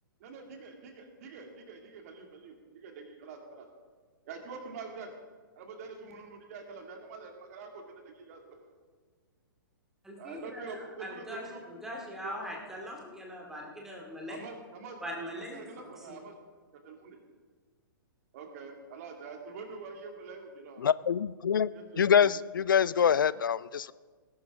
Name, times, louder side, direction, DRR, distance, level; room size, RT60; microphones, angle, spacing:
voice 1, 0.2-3.7 4.3-5.1 5.6-8.7 10.2-11.7 12.2-12.3 14.3-16.4 16.7-17.2 18.3-20.9 21.7-22.3, right 4 dB, 45° right, 3 dB, 2.3 m, -45 dB
voice 2, 10.0-10.6 11.0-11.4 11.8-14.4 15.0-15.6 16.0-16.2, equal, 5° right, -1 dB, 2.4 m, -41 dB
voice 3, 20.8-21.7 22.0-23.9, left 8 dB, 65° left, 19 dB, 0.4 m, -25 dB
19.5 x 11.5 x 3.6 m, 1.5 s
figure-of-eight pair, 115°, 12 cm